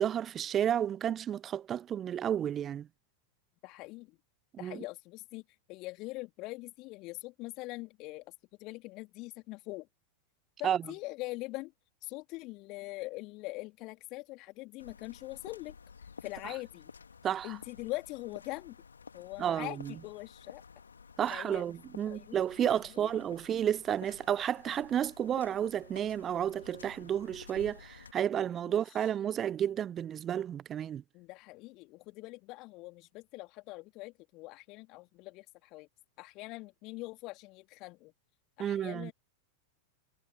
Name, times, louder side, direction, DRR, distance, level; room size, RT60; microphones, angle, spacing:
voice 1, 0.0-2.9 4.6-4.8 10.6-10.8 16.4-16.5 17.2-17.5 19.4-20.0 21.2-31.0 38.6-39.1, right 9 dB, 25° right, 0.7 m, -31 dB
voice 2, 3.6-4.2 4.6-5.4 5.7-8.2 8.6-9.9 10.6-11.7 12.0-15.7 16.2-16.9 17.4-18.8 19.1-20.6 21.3-21.6 22.1-22.4 23.0-23.1 28.6-28.8 31.1-35.9 36.2-38.1 38.6-39.1, left 22 dB, 40° left, 3.5 m, -43 dB
sound 1, 14.8-28.1, left 5 dB, 75° left, 2.7 m, -52 dB
figure-of-eight pair, 90°, 0 cm